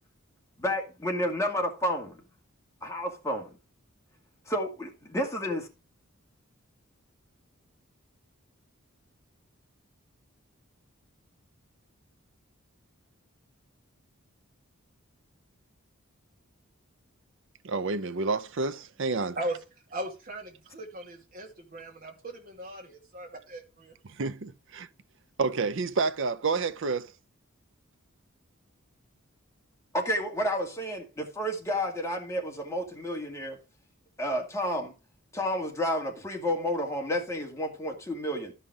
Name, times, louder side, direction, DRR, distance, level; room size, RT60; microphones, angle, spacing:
voice 1, 0.6-2.2 2.8-3.5 4.5-5.7 29.9-33.6 34.2-34.9 35.3-38.5, equal, 15° left, 2.2 m, -30 dB
voice 2, 17.6-19.4 24.0-24.9 25.4-27.1, right 4 dB, 60° right, 0.6 m, -29 dB
voice 3, 19.9-23.9, right 1 dB, 45° right, 2.6 m, -38 dB
13.0 x 5.6 x 4.7 m
head